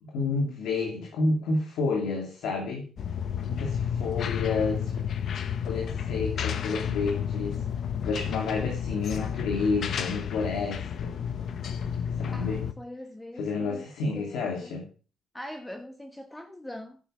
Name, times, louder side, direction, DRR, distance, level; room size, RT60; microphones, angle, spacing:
voice 1, 0.0-2.9 3.5-5.0 5.6-7.6 8.0-11.1 12.1-12.6 13.3-14.9, left 3 dB, 85° left, 2.8 m, -30 dB
sound 1, 3.0-12.7, left 8 dB, 60° left, 1.1 m, -31 dB
voice 2, 12.3-13.9 14.2-14.7 15.3-17.0, left 1 dB, 10° left, 1.2 m, -42 dB
11.0 x 8.5 x 5.7 m
cardioid pair, 90°, 0 cm